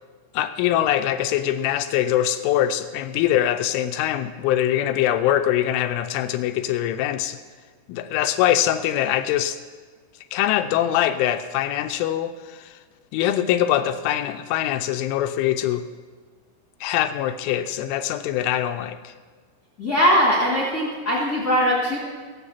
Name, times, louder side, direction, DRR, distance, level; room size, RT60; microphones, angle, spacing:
voice 1, 0.3-7.4 7.9-9.6 10.3-12.3 13.1-15.8 16.8-19.1, left 12 dB, 85° left, 10 dB, 3.0 m, -23 dB
voice 2, 19.8-22.0, equal, 40° left, -4 dB, 1.4 m, -20 dB
21.5 x 7.7 x 5.7 m, 1.5 s
omnidirectional pair, 5.7 m